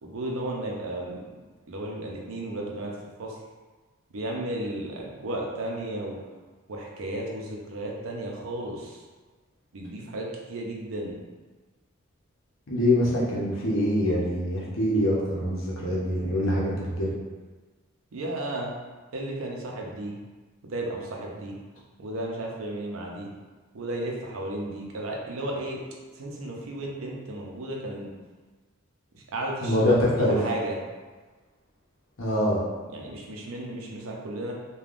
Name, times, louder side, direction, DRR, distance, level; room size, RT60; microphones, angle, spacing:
voice 1, 0.0-1.2 1.7-2.9 3.2-3.4 4.1-6.2 6.7-9.0 9.7-11.2 18.1-18.7 19.1-20.1 20.6-21.6 22.0-23.3 23.7-25.8 26.1-28.1 29.1-30.8 32.9-34.5, right 1 dB, 75° right, -1 dB, 0.5 m, -34 dB
voice 2, 12.7-17.1 29.6-30.3 32.2-32.6, left 1 dB, 70° left, -5 dB, 0.8 m, -24 dB
3.3 x 2.2 x 2.5 m, 1.3 s
head